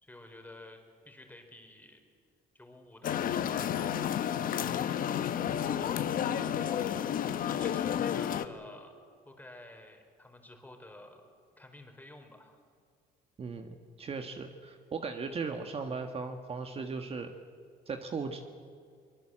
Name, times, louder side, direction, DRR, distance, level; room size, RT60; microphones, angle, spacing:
voice 1, 0.0-2.0 2.5-4.2 4.4-5.1 7.5-8.9 9.2-11.3 11.6-12.6, left 1 dB, 10° left, 4 dB, 4.1 m, -51 dB
sound 1, 3.0-8.5, left 9 dB, 55° left, 1.2 m, -31 dB
voice 2, 13.4-17.3 17.9-18.4, right 4 dB, 35° right, 6 dB, 1.6 m, -37 dB
23.5 x 21.5 x 7.6 m, 2.1 s
cardioid pair, 110°, 17 cm